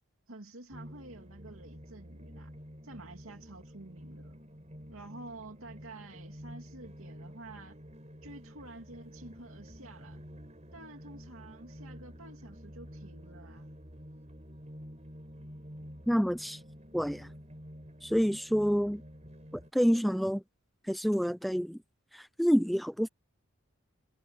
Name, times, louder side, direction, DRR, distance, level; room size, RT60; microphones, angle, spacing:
voice 1, 0.3-2.5 2.8-4.4 4.9-7.8 8.2-10.2 10.7-13.7 18.7-18.9, right 2 dB, 75° right, 2.4 m, -49 dB
sound 1, 0.7-19.7, equal, 30° right, 6.4 m, -49 dB
voice 2, 16.1-16.6 16.9-17.3 18.0-19.0 19.5-20.4 20.8-21.8 22.1-23.1, equal, ahead, 0.4 m, -28 dB
head